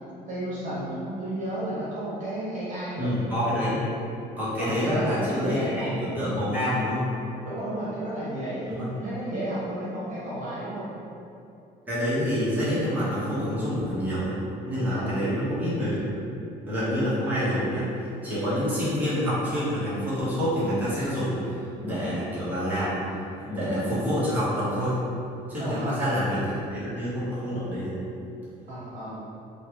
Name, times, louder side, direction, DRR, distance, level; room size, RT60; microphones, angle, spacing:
voice 1, 0.3-3.1 4.6-6.0 7.4-10.9 14.9-15.2 25.6-25.9 28.7-29.2, right 1 dB, 50° right, -9 dB, 1.1 m, -32 dB
voice 2, 3.0-3.9 4.4-7.1 8.7-8.9 11.9-14.4 14.7-16.2 16.7-23.1 23.4-25.0 25.5-27.9, equal, 10° right, -12 dB, 1.2 m, -27 dB
3.1 x 2.3 x 3.0 m, 2.7 s
cardioid pair, 110°, 17 cm